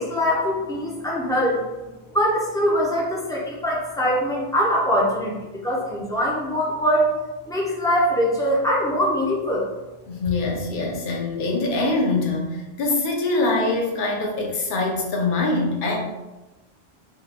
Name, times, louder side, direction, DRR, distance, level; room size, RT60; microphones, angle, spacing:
voice 1, 0.0-1.6 2.1-7.1 7.5-9.7, equal, 5° left, -4 dB, 0.5 m, -22 dB
voice 2, 10.1-16.0, left 2 dB, 55° left, 0 dB, 0.8 m, -24 dB
3.6 x 2.2 x 2.9 m, 1.1 s
omnidirectional pair, 1.1 m